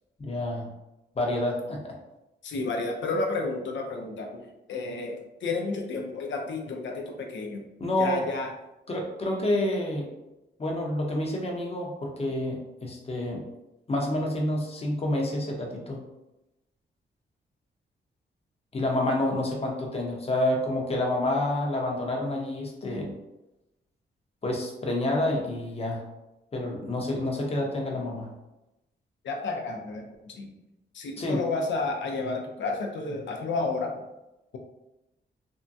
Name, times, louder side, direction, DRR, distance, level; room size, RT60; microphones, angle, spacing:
voice 1, 0.2-0.7 1.2-1.9 7.8-8.2 8.9-10.1 10.6-13.4 13.9-16.0 18.7-23.2 24.4-26.1 26.5-28.3 31.2-31.4, left 1 dB, 35° left, -1 dB, 0.8 m, -28 dB
voice 2, 2.4-7.7 8.0-8.5 29.2-30.6 30.9-34.0, left 3 dB, 85° left, 2 dB, 0.6 m, -31 dB
3.5 x 2.2 x 2.6 m, 0.94 s
cardioid pair, 95°, 19 cm